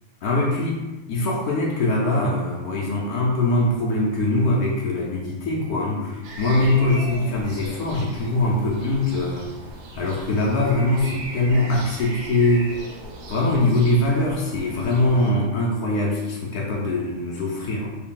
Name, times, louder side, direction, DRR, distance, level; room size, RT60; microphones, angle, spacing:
voice 1, 0.2-9.5 10.0-12.8 13.3-17.9, left 2 dB, 75° left, -3 dB, 1.1 m, -22 dB
sound 1, 6.2-15.3, right 1 dB, 65° right, 0.7 m, -38 dB
3.2 x 2.7 x 3.6 m, 1.1 s
omnidirectional pair, 1.6 m